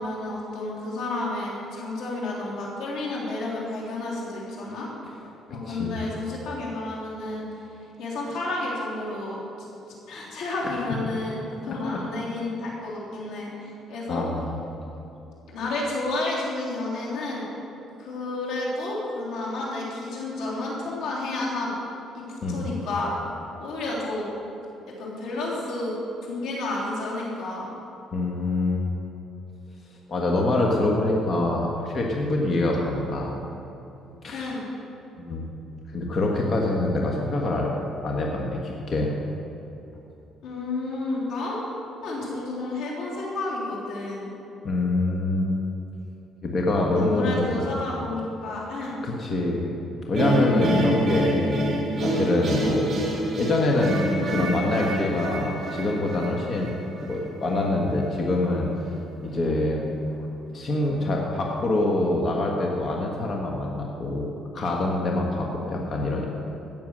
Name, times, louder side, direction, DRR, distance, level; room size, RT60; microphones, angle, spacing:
voice 1, 0.0-4.9 5.5-7.7 8.0-9.4 10.1-14.2 15.5-17.5 18.0-21.7 22.1-23.2 23.6-24.3 24.8-26.0 26.2-27.7 34.3-34.7 40.4-41.6 42.0-44.3 47.0-49.0, left 2 dB, 90° left, -5 dB, 3.6 m, -31 dB
voice 2, 5.6-6.0 10.6-10.9 14.1-14.5 22.4-22.7 28.1-28.8 30.1-33.3 34.2-34.5 35.2-35.5 35.9-39.1 44.6-45.5 46.4-47.7 49.0-49.7 50.1-51.6 51.9-52.9 53.4-56.7 57.0-58.7 59.2-59.8 60.5-64.3 64.5-66.4, left 2 dB, 45° left, -1 dB, 1.6 m, -25 dB
sound 1, 50.1-57.2, right 1 dB, 30° right, 3.2 m, -27 dB
16.5 x 7.0 x 6.3 m, 2.9 s
cardioid pair, 115°, 0 cm